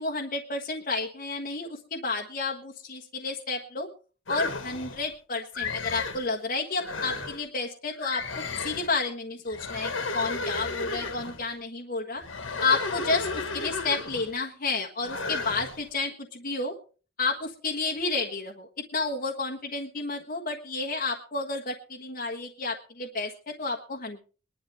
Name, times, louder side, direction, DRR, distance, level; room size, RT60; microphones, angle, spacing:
voice 1, 0.0-3.9 4.3-8.2 8.6-12.2 12.6-16.7 17.2-24.2, left 3 dB, 45° left, 1 dB, 1.4 m, -31 dB
sound 1, 4.3-5.1 5.5-6.3 6.8-7.4 8.0-9.0 9.5-11.4 12.2-14.4 15.0-15.8, left 4 dB, 75° left, 1.7 m, -33 dB
21.5 x 11.5 x 3.4 m, 0.37 s
head